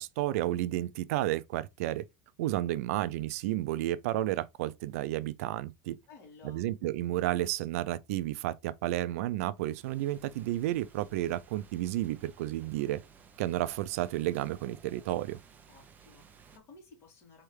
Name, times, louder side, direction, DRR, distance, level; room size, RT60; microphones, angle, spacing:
voice 1, 0.0-2.0 2.4-6.0 6.4-13.0 13.4-15.4, right 15 dB, 75° right, 0.4 m, -32 dB
voice 2, 6.1-6.7 15.7-17.4, left 4 dB, 35° left, 3.0 m, -55 dB
sound 1, 9.6-16.6, right 6 dB, 20° right, 0.7 m, -57 dB
4.5 x 3.3 x 3.2 m
supercardioid pair, 150°, 8 cm